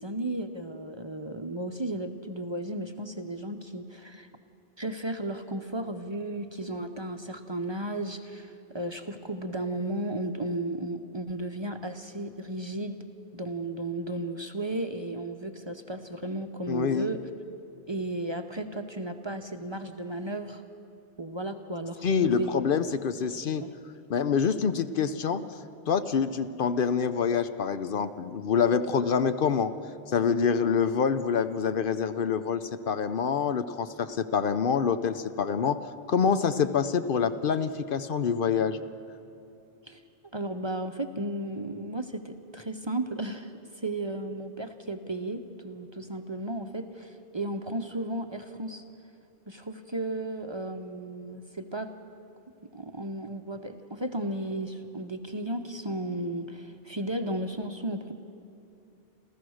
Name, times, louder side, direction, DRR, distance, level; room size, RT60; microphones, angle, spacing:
voice 1, 0.0-4.3 4.8-13.0 13.3-17.2 17.9-20.6 21.2-22.6 23.6-23.7 39.9-40.0 40.3-48.8 49.5-51.9 52.6-58.1, right 1 dB, 30° right, 6 dB, 0.7 m, -34 dB
voice 2, 16.7-17.1 22.0-23.6 24.1-25.4 25.9-29.7 30.1-38.8, left 6 dB, 60° left, 11 dB, 0.8 m, -26 dB
29.5 x 14.0 x 6.4 m, 2.7 s
omnidirectional pair, 1.1 m